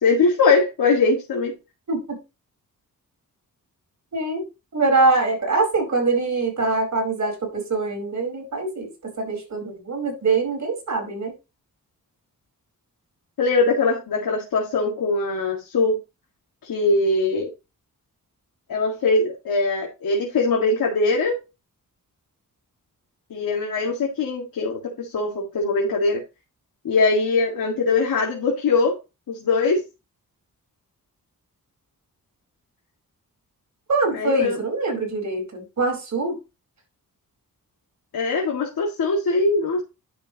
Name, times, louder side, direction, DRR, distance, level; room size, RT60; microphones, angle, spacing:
voice 1, 0.0-1.5 13.4-16.0 16.6-17.5 18.7-21.4 23.3-26.2 26.8-29.0 29.3-29.8 34.1-34.6 38.1-39.8, left 3 dB, 90° left, 2.2 m, -21 dB
voice 2, 1.9-2.2 4.1-4.4 4.7-11.3 33.9-36.3, right 3 dB, 55° right, 4.7 m, -23 dB
10.5 x 6.8 x 3.0 m
wide cardioid pair, 125°, 34 cm